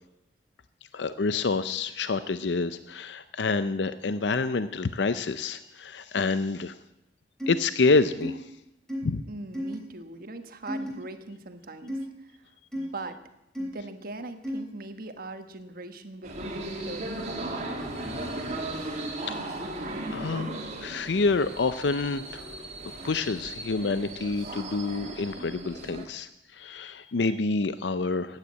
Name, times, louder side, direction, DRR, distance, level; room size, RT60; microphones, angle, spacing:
voice 1, 0.9-6.8 7.5-8.5 9.0-9.2 20.0-20.5 20.8-22.5 23.0-28.4, left 3 dB, 70° left, 12 dB, 0.6 m, -27 dB
sound 1, 7.4-7.6 8.2-8.3 8.9-9.0 9.5-9.8 10.7-10.9 11.9-12.0 12.7-12.9 13.5-13.7 14.4-14.6, equal, 5° left, 3.4 m, -32 dB
voice 2, 9.3-12.0 12.7-13.2 13.6-17.6, right 2 dB, 55° right, 8 dB, 1.3 m, -40 dB
sound 2, 16.2-26.1, right 2 dB, 40° right, 2.2 m, -36 dB
15.0 x 9.8 x 8.5 m, 0.90 s
head